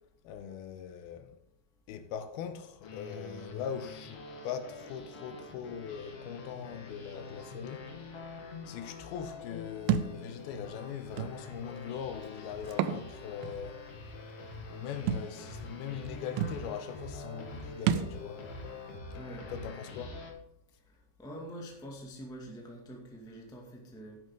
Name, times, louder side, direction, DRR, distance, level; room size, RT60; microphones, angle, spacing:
voice 1, 0.2-1.4 1.9-7.9 8.7-13.8 14.7-18.5 19.5-20.1, left 8 dB, 80° left, 2.6 m, -41 dB
sound 1, 2.8-20.3, left 3 dB, 55° left, 1.8 m, -45 dB
Thump thud, 9.9-10.1 11.2-11.3 12.7-13.0 13.4-13.5 15.1-15.3 16.1-16.2 16.4-16.6 17.9-18.2, right 9 dB, 80° right, 2.3 m, -29 dB
voice 2, 19.1-19.5 21.2-24.2, right 1 dB, 5° left, 0.5 m, -45 dB
11.0 x 10.5 x 3.8 m
omnidirectional pair, 4.5 m